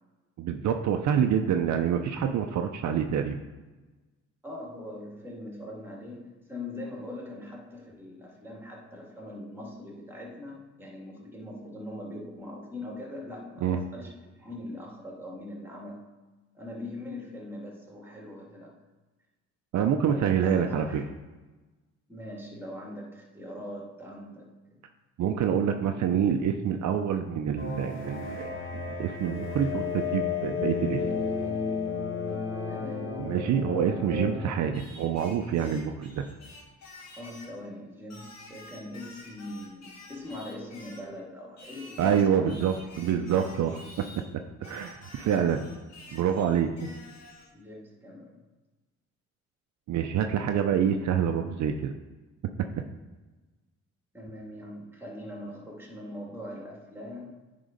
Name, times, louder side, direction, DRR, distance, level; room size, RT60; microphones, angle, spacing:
voice 1, 0.4-3.4 13.6-13.8 19.7-21.0 25.2-28.5 28.9-31.0 33.2-36.2 42.0-44.1 44.6-45.6 46.1-46.7 49.9-51.9 52.6-52.7, right 8 dB, 65° right, 6 dB, 0.6 m, -26 dB
voice 2, 4.4-16.1 16.5-18.7 20.1-21.0 22.1-24.8 32.7-33.2 37.2-42.6 46.9-47.0 47.5-48.4 54.1-57.3, left 1 dB, 5° right, -1 dB, 2.2 m, -41 dB
sound 1, 27.6-34.5, left 5 dB, 40° left, 1.8 m, -32 dB
Singing, 34.7-37.6 38.1-41.1 41.6-44.3 44.6-47.5, left 2 dB, 60° left, 1.7 m, -50 dB
9.1 x 3.8 x 5.1 m, 1.2 s
cardioid pair, 90°, 30 cm